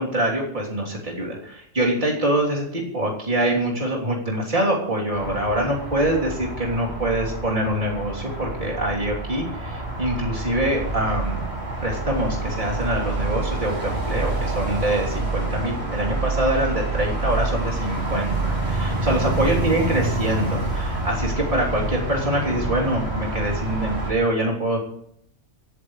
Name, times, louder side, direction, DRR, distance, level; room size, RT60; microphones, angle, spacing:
voice 1, 0.0-11.5 11.8-24.8, right 1 dB, 40° right, -4 dB, 3.6 m, -24 dB
sound 1, 5.1-24.1, right 2 dB, 60° right, 3.6 m, -27 dB
sound 2, 12.6-20.9, right 1 dB, 5° left, 7.5 m, -44 dB
26.5 x 13.5 x 3.3 m, 0.73 s
omnidirectional pair, 1.2 m